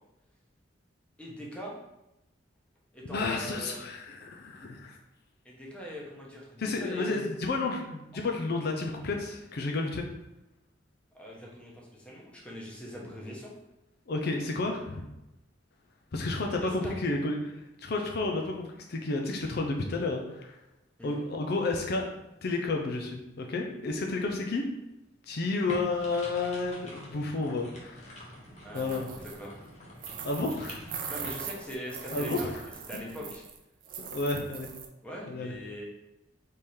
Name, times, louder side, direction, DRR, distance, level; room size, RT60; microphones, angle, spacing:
voice 1, 1.2-1.8 2.9-3.8 5.4-7.3 8.3-8.4 11.1-13.5 16.6-16.9 21.0-21.2 28.6-29.7 31.1-32.6 32.9-33.4 35.0-35.8, equal, 5° left, -3 dB, 0.9 m, -41 dB
voice 2, 3.1-5.0 6.6-10.0 14.1-15.1 16.1-20.6 21.0-22.1 22.4-24.7 25.3-28.2 28.7-29.1 30.2-30.8 32.1-32.5 32.9-33.2 34.1-34.7 35.3-35.5, left 3 dB, 55° left, 2 dB, 0.5 m, -31 dB
sound 1, 25.7-31.3, equal, 40° left, 1.1 m, -46 dB
sound 2, 28.7-29.5 30.0-33.6 33.8-34.9, right 7 dB, 45° right, 0.5 m, -41 dB
3.6 x 3.3 x 4.3 m, 0.92 s
head